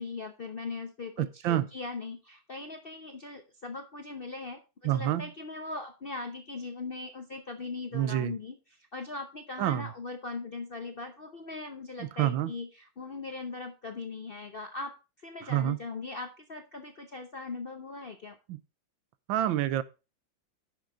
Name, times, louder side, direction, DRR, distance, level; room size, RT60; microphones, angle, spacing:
voice 1, 0.0-18.4, left 3 dB, 55° left, 0.6 m, -40 dB
voice 2, 1.2-1.7 4.8-5.3 7.9-8.3 9.6-9.9 12.2-12.5 15.5-15.8 18.5-18.6 19.3-19.8, right 13 dB, 85° right, 1.4 m, -27 dB
9.7 x 6.5 x 3.7 m
omnidirectional pair, 2.1 m